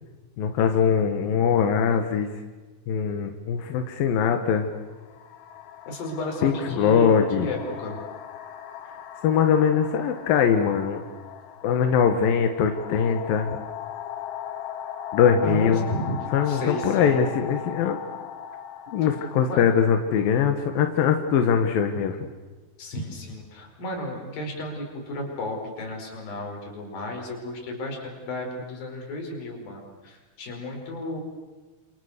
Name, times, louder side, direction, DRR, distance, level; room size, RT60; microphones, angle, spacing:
voice 1, 0.4-2.3 2.9-4.8 6.4-7.5 9.2-11.0 11.6-13.6 15.1-15.9 16.3-18.0 18.9-22.2, left 7 dB, 65° left, 5 dB, 2.6 m, -22 dB
sound 1, 3.6-3.8 4.7-21.4, left 9 dB, 80° left, 4.1 m, -39 dB
voice 2, 5.9-8.0 15.4-16.1 16.5-17.2 19.4-19.6 22.8-31.2, left 1 dB, 50° left, 1 dB, 6.6 m, -33 dB
28.0 x 28.0 x 6.7 m, 1.3 s
omnidirectional pair, 5.6 m